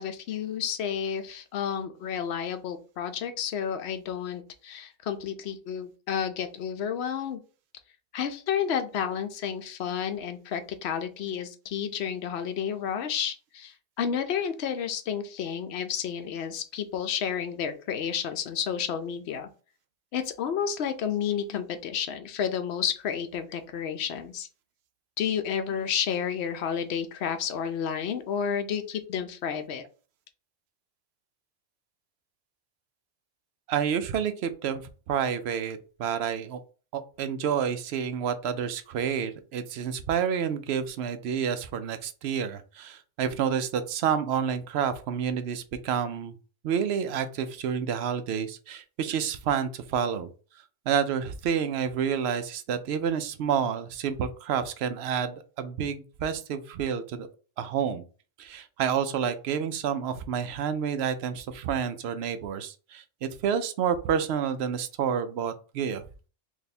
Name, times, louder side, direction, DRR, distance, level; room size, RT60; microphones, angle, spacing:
voice 1, 0.0-7.4 8.1-19.5 20.1-24.5 25.2-29.8, left 8 dB, 65° left, 9 dB, 0.8 m, -31 dB
voice 2, 33.7-34.8 35.1-36.6 36.9-46.3 46.6-50.3 50.9-57.3 57.6-58.0 58.4-66.0, right 7 dB, 65° right, 11 dB, 0.7 m, -29 dB
3.3 x 2.7 x 4.1 m, 0.37 s
omnidirectional pair, 1.3 m